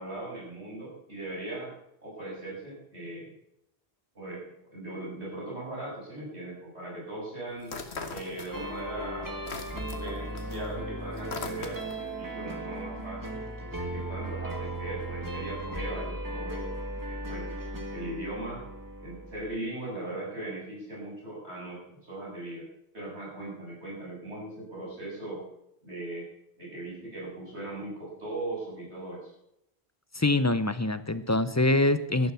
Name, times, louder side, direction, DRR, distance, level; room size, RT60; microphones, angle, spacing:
voice 1, 0.0-1.7 2.0-3.3 4.1-7.7 8.1-9.4 9.9-13.4 13.8-16.8 17.1-17.4 17.9-18.6 19.0-22.7 22.9-25.4 25.8-26.3 26.6-29.3, right 1 dB, 85° right, -4 dB, 7.6 m, -39 dB
sound 1, 7.6-8.9 9.2-12.1, left 4 dB, 85° left, 1.7 m, -40 dB
sound 2, 8.5-19.6, right 1 dB, 20° right, 1.9 m, -37 dB
voice 2, 30.1-32.3, left 2 dB, 20° left, 13 dB, 0.6 m, -24 dB
13.5 x 11.0 x 7.0 m, 0.79 s
omnidirectional pair, 1.1 m